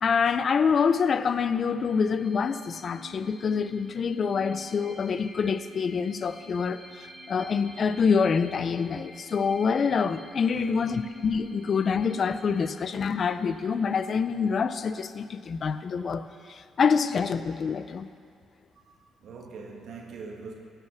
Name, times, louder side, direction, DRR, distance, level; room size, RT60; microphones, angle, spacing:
voice 1, 0.0-6.8 7.3-18.1, left 6 dB, 50° left, 0.5 m, -26 dB
sound 1, 1.6-15.0, left 1 dB, 5° right, 2.8 m, -49 dB
voice 2, 10.5-11.0 18.7-20.5, right 4 dB, 70° right, 1.6 m, -43 dB
16.0 x 5.7 x 5.7 m
cardioid pair, 90°, 0 cm